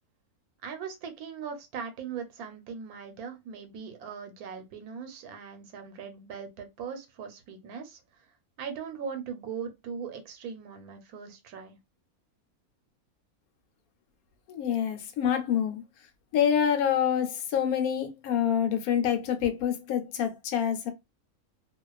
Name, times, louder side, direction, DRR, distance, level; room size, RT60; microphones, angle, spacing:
voice 1, 0.6-8.0 8.6-11.8, right 6 dB, 90° right, 1.2 m, -40 dB
voice 2, 14.5-15.8 16.3-20.9, left 9 dB, 85° left, 1.1 m, -26 dB
2.5 x 2.3 x 2.3 m
omnidirectional pair, 1.5 m